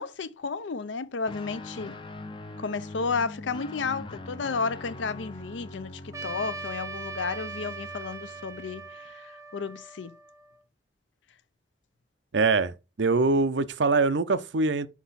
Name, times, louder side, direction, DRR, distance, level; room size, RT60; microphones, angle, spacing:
voice 1, 0.0-2.0 2.6-10.1, left 4 dB, 80° left, 0.5 m, -32 dB
Guitar, 1.3-8.9, left 2 dB, 25° left, 0.5 m, -42 dB
Trumpet, 6.1-10.6, right 4 dB, 15° right, 0.7 m, -40 dB
voice 2, 12.3-14.9, right 3 dB, 75° right, 0.6 m, -23 dB
6.0 x 5.6 x 4.0 m
head